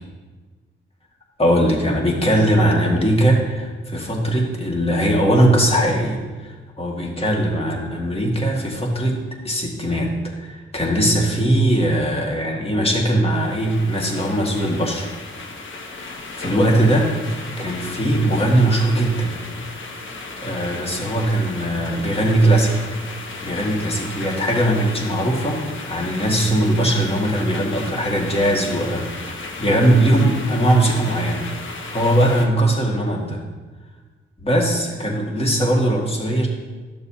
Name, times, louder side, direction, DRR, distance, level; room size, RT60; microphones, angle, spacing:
voice 1, 1.4-15.1 15.9-17.1 17.6-19.4 20.4-22.8 23.4-31.5 31.9-33.4 34.4-36.5, right 1 dB, 25° left, 0 dB, 1.8 m, -20 dB
sound 1, 13.3-32.5, left 3 dB, 70° left, 1.1 m, -35 dB
12.5 x 6.8 x 2.8 m, 1.4 s
cardioid pair, 85°, 21 cm